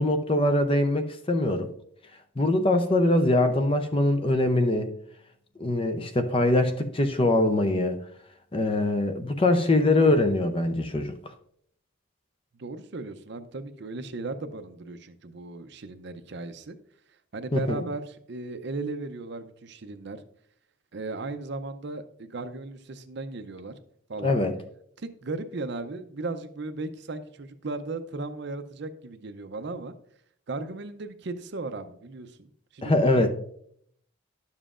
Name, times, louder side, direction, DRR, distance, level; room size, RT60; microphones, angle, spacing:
voice 1, 0.0-1.7 2.4-4.9 5.6-8.0 8.5-11.1 17.5-17.8 24.2-24.5 32.8-33.3, left 1 dB, 25° left, 0.6 m, -23 dB
voice 2, 12.6-16.8 17.3-20.2 20.9-23.7 24.1-24.4 25.0-29.9 30.5-33.3, right 3 dB, 55° right, 0.6 m, -36 dB
11.0 x 7.2 x 2.5 m
head